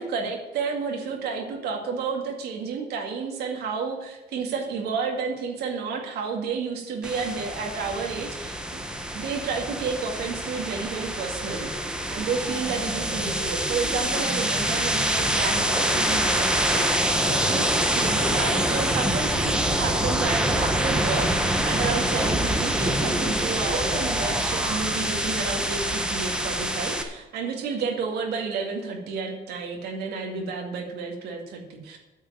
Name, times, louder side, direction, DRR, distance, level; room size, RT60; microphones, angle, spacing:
voice 1, 0.0-8.9 9.1-11.7 12.1-32.0, right 5 dB, 75° right, 2 dB, 2.1 m, -31 dB
sound 1, 7.0-27.0, right 1 dB, 5° right, 1.3 m, -25 dB
9.3 x 6.6 x 8.7 m, 1.0 s
cardioid pair, 110°, 17 cm